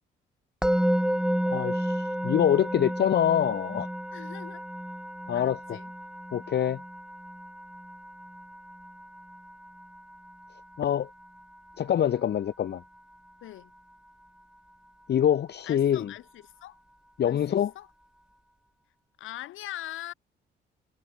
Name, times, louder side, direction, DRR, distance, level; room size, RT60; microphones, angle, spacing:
Musical instrument, 0.6-11.7, equal, 5° right, 2.9 m, -32 dB
voice 1, 1.5-3.9 5.3-5.8 6.3-6.8 10.8-11.1 11.8-12.8 15.1-16.1 17.2-17.7, left 9 dB, 55° left, 1.4 m, -25 dB
voice 2, 4.1-4.7 5.3-5.9 13.4-13.7 15.6-16.8 17.2-17.9 19.2-20.1, left 14 dB, 85° left, 5.6 m, -42 dB
cardioid pair, 90°, 20 cm